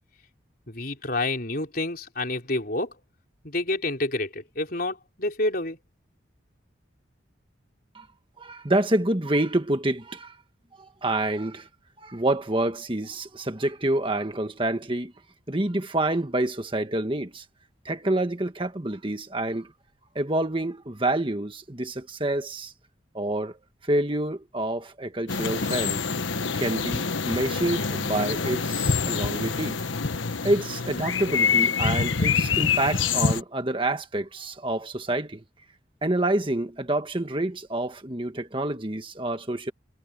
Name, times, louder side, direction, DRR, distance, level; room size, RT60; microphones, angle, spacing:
voice 1, 0.7-2.9 3.4-5.8, left 2 dB, 50° left, 4.5 m, -28 dB
voice 2, 8.4-10.4 10.8-11.7 12.0-15.1 15.5-17.4 17.8-19.7 20.1-22.7 23.1-23.6 23.8-26.1 26.5-29.8 30.4-35.4 36.0-39.7, right 1 dB, 25° right, 1.5 m, -27 dB
sound 1, 25.3-33.4, left 5 dB, 80° left, 1.3 m, -26 dB
head